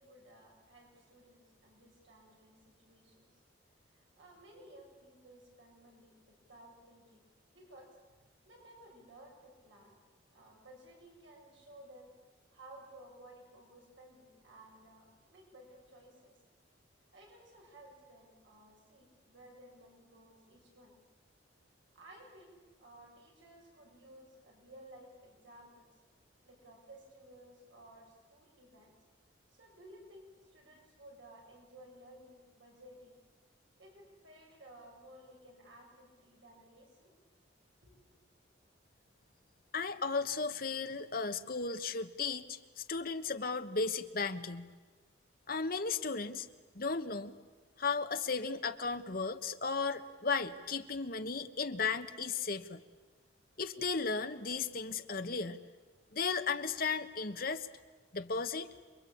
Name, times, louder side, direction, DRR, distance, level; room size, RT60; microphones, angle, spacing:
voice 1, 0.0-3.3 3.9-7.2 7.5-7.9 8.5-10.0 10.3-12.1 12.5-16.4 17.1-21.0 21.9-26.0 26.4-28.9 29.5-33.2 33.8-37.1 37.8-38.0, right 1 dB, 75° right, 0 dB, 7.1 m, -57 dB
voice 2, 39.7-44.7 45.5-46.5 46.7-47.4 47.8-52.8 53.6-55.6 56.1-57.7 58.1-58.7, left 4 dB, 50° left, 9 dB, 1.2 m, -35 dB
28.5 x 23.0 x 8.7 m, 1.3 s
head